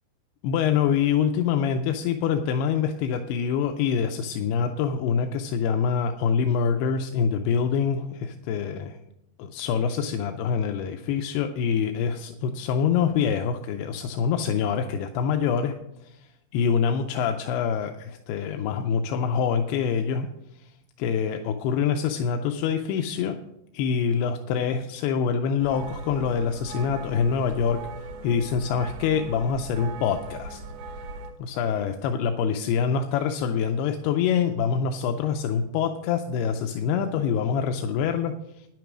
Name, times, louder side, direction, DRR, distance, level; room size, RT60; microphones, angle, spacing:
voice 1, 0.4-9.0 9.4-15.7 16.0-20.3 20.5-20.7 21.0-23.4 23.7-27.8 28.2-30.6 31.4-38.7, left 7 dB, 90° left, 6 dB, 2.7 m, -25 dB
sound 1, 25.6-31.3, right 2 dB, 85° right, 3.1 m, -39 dB
10.0 x 9.2 x 6.0 m, 0.85 s
omnidirectional pair, 4.5 m